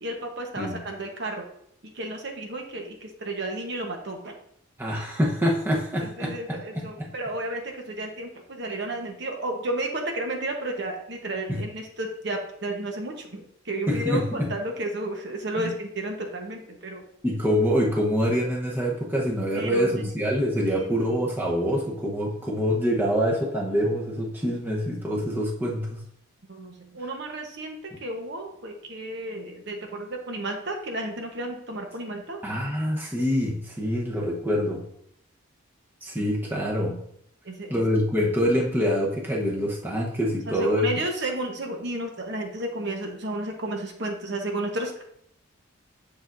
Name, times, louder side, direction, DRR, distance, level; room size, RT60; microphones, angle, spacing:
voice 1, 0.0-1.5 1.9-4.4 6.0-14.2 14.5-17.0 19.5-20.0 20.6-21.1 26.5-27.7 28.0-32.4 37.4-37.8 40.5-45.0, right 1 dB, 55° right, 2 dB, 1.0 m, -32 dB
voice 2, 4.8-7.1 11.5-11.6 13.9-14.5 15.6-15.7 17.2-26.0 32.4-34.8 36.0-37.0 37.7-40.9, equal, 10° right, -3 dB, 0.9 m, -25 dB
7.0 x 7.0 x 2.6 m, 0.70 s
head